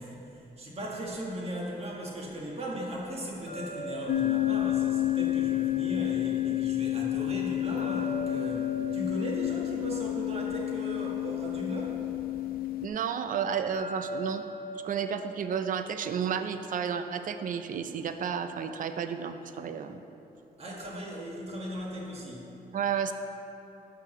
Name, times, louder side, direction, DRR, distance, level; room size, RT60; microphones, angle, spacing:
voice 1, 0.0-12.1 20.6-22.5, right 1 dB, 40° right, -3 dB, 1.3 m, -37 dB
sound 1, 3.5-6.5 7.8-11.3 13.7-16.8, right 1 dB, 45° left, 0.8 m, -42 dB
sound 2, 4.1-12.9, left 15 dB, 65° left, 0.4 m, -30 dB
voice 2, 12.8-14.4 14.8-20.0 22.7-23.1, right 7 dB, 55° right, 9 dB, 0.4 m, -32 dB
6.0 x 5.7 x 5.8 m, 2.9 s
cardioid pair, 130°, 16 cm